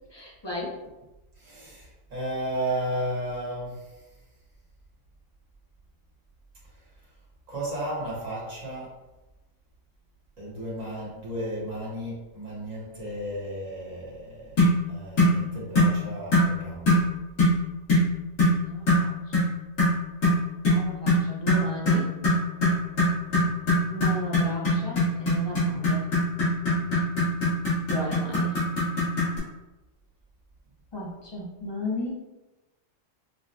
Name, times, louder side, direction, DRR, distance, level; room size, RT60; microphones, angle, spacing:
voice 1, 0.1-0.8 18.6-19.3 20.7-22.2 23.9-26.1 27.9-28.7 29.2-29.4 30.9-32.1, left 1 dB, 35° left, -4 dB, 0.4 m, -34 dB
voice 2, 1.4-4.1 6.7-6.8 7.5-9.0 10.4-14.6 14.9-17.0 23.3-23.6 26.8-27.0, right 1 dB, 85° right, -6 dB, 1.6 m, -34 dB
sound 1, 14.6-14.8 15.2-15.4 15.7-16.0 16.3-16.5 16.9-17.1 17.4-17.6 17.9-18.1 18.4-18.6 18.9-19.1 19.3-19.5 19.8-29.4, left 1 dB, 85° left, 1.8 m, -22 dB
5.7 x 2.1 x 2.6 m, 1.0 s
omnidirectional pair, 1.3 m